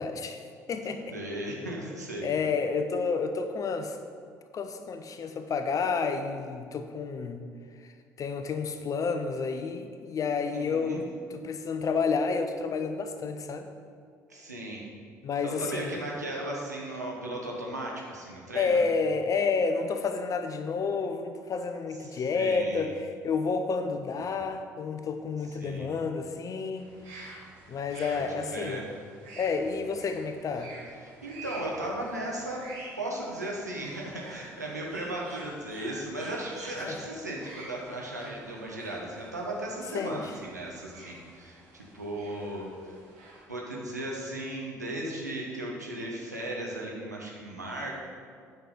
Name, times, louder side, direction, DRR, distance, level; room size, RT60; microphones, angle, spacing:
voice 1, 0.0-1.1 2.2-4.0 4.5-7.4 8.2-11.0 11.3-13.7 15.2-15.9 18.5-26.9 27.7-28.8 29.4-30.7 36.9-37.0 39.9-40.2, left 4 dB, 40° left, 7 dB, 0.8 m, -30 dB
voice 2, 1.1-2.3 10.5-11.0 14.3-14.8 15.4-18.8 22.0-22.9 25.5-25.9 28.1-28.9 31.0-32.6 33.0-43.0 43.5-47.9, right 1 dB, 90° right, -2 dB, 1.2 m, -36 dB
sound 1, 26.7-43.4, right 2 dB, 70° right, 2.0 m, -48 dB
9.0 x 5.9 x 5.0 m, 2.1 s
figure-of-eight pair, 50°, 9 cm